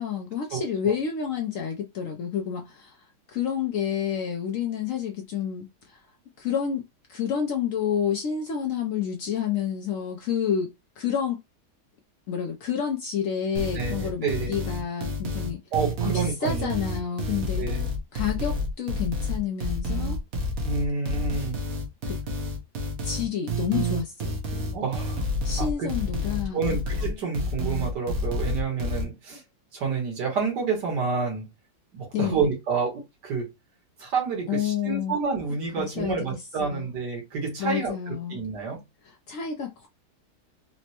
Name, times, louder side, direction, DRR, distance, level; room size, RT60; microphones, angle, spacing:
voice 1, 0.0-3.0 3.3-6.0 6.4-6.8 7.1-11.4 12.3-15.6 16.1-17.7 18.1-20.2 22.1-22.2 23.0-24.7 25.4-26.8 32.1-32.4 34.5-35.2 35.8-36.9 37.6-38.4 39.0-39.9, left 8 dB, 70° left, 0.8 m, -29 dB
voice 2, 0.5-0.9 13.8-14.6 15.7-16.7 17.6-17.9 20.6-21.6 24.7-25.2 25.6-25.9 26.5-29.4 29.7-31.5 31.9-33.5 34.0-38.8, right 5 dB, 85° right, 1.9 m, -29 dB
sound 1, 13.6-29.0, left 1 dB, 60° right, 1.2 m, -29 dB
4.2 x 2.1 x 2.8 m
omnidirectional pair, 1.8 m